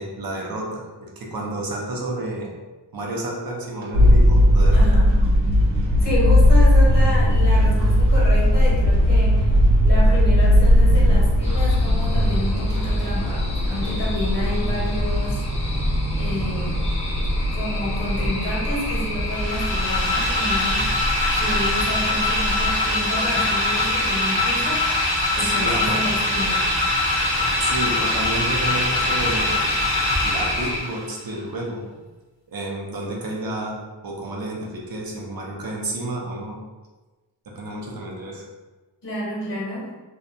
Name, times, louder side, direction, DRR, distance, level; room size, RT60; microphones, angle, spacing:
voice 1, 0.0-2.5 2.9-4.9 25.4-26.1 27.6-29.6 30.2-31.8 32.5-36.6 37.5-38.4, right 1 dB, 55° right, -1 dB, 0.6 m, -30 dB
sound 1, 3.9-22.7, equal, 80° right, 0.8 m, -19 dB
voice 2, 4.7-5.1 6.0-9.6 9.8-15.4 16.1-16.9 17.5-21.1 21.3-24.9 25.3-26.8 39.0-39.9, equal, 70° left, -6 dB, 1.3 m, -29 dB
sound 2, 11.4-30.8, left 1 dB, 15° left, 0.6 m, -29 dB
sound 3, 19.3-31.1, left 2 dB, 45° left, 0.8 m, -23 dB
2.7 x 2.2 x 2.5 m, 1.2 s
wide cardioid pair, 105°, 44 cm